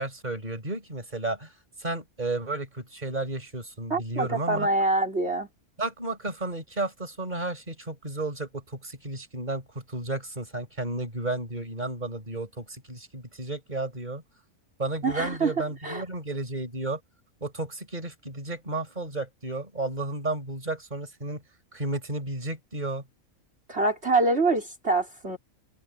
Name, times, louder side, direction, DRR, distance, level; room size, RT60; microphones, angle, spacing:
voice 1, 0.0-1.5 1.8-4.7 5.8-14.2 14.8-17.0 17.4-21.4 21.7-23.0, right 2 dB, 30° right, 5.4 m, -33 dB
voice 2, 3.9-5.5 15.0-15.5 15.8-16.0 23.7-25.4, right 2 dB, 45° right, 5.0 m, -25 dB
omnidirectional pair, 1.5 m